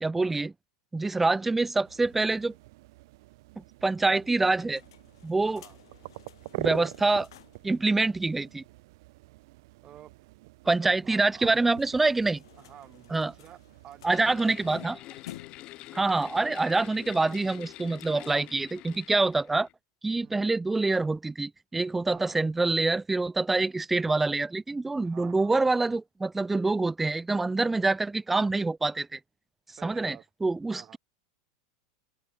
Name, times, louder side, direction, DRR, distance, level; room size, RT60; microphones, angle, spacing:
voice 1, 0.0-0.5 0.9-2.5 3.6-4.8 5.2-5.6 6.6-7.3 7.6-8.6 10.7-12.4 13.1-13.3 14.0-15.0 15.9-19.7 20.0-29.2 29.8-31.0, right 3 dB, 5° right, 0.3 m, -26 dB
voice 2, 1.1-1.6 5.4-5.8 9.8-10.1 10.6-11.7 12.6-14.8 20.2-20.5 22.1-22.4 25.0-25.6 29.7-30.2 30.7-31.0, right 11 dB, 30° right, 2.3 m, -50 dB
sound 1, 1.8-14.7, right 21 dB, 60° right, 0.5 m, -44 dB
sound 2, 4.5-7.7 8.0-8.1 8.4-8.5 11.2-15.8, left 14 dB, 85° left, 2.5 m, -52 dB
sound 3, 14.1-19.7, left 17 dB, 40° left, 1.8 m, -46 dB
open air
supercardioid pair, 150°, 2 cm